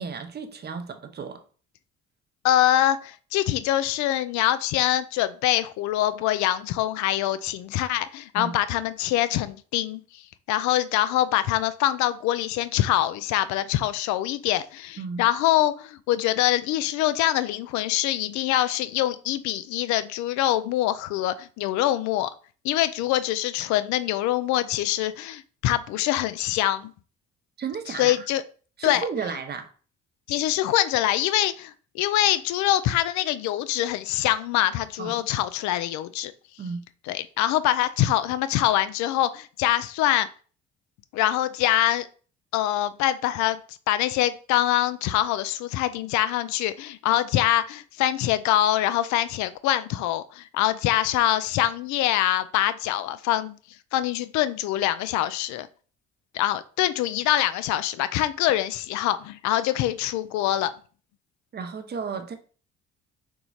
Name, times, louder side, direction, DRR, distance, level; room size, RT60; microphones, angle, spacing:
voice 1, 0.0-1.4 8.4-8.6 15.0-15.3 27.6-28.3 28.8-29.7 35.0-35.3 36.6-36.9 61.5-62.3, right 5 dB, 30° right, 8 dB, 0.7 m, -33 dB
voice 2, 2.4-22.3 22.6-26.9 28.0-28.4 28.8-29.1 30.3-36.3 37.1-40.3 41.1-42.1 42.5-53.6 53.9-55.7 56.3-60.7, left 13 dB, 55° left, 14 dB, 0.5 m, -24 dB
4.6 x 3.9 x 2.4 m, 0.40 s
figure-of-eight pair, 50°, 36 cm